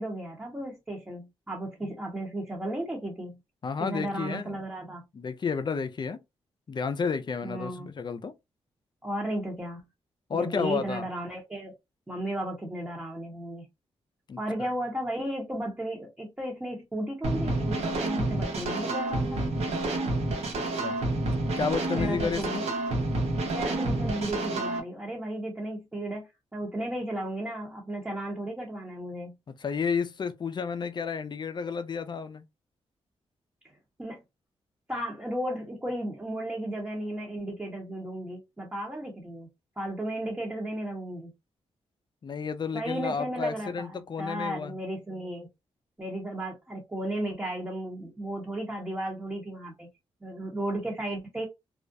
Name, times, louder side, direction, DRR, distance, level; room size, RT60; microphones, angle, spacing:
voice 1, 0.0-3.4 3.8-5.0 7.4-7.9 9.0-9.8 10.3-11.7 12.1-13.7 14.4-19.4 22.0-22.5 23.5-29.3 34.0-34.2 34.9-39.5 39.8-41.3 42.7-45.5 46.0-49.9 50.2-51.5, right 1 dB, 15° right, 0.9 m, -34 dB
voice 2, 3.6-4.6 5.1-6.2 6.7-8.3 10.3-11.0 14.3-14.7 20.8-21.0 21.6-22.6 29.6-32.4 42.2-44.8, left 5 dB, 45° left, 0.4 m, -31 dB
sound 1, 17.2-24.8, right 2 dB, 70° right, 0.8 m, -29 dB
2.4 x 2.1 x 2.6 m
cardioid pair, 70°, 11 cm